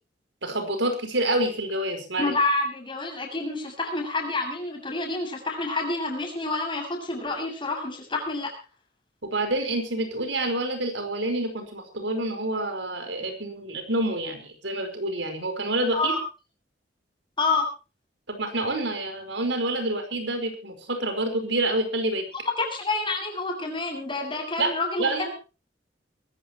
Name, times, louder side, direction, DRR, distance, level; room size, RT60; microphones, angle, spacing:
voice 1, 0.4-2.3 9.2-16.1 18.3-22.2 24.6-24.7 25.0-25.3, right 1 dB, 85° right, 6 dB, 5.0 m, -27 dB
voice 2, 2.2-8.5 15.9-16.2 17.4-17.7 22.6-25.3, left 2 dB, 30° left, 2 dB, 7.3 m, -28 dB
23.0 x 14.5 x 3.1 m, 0.32 s
head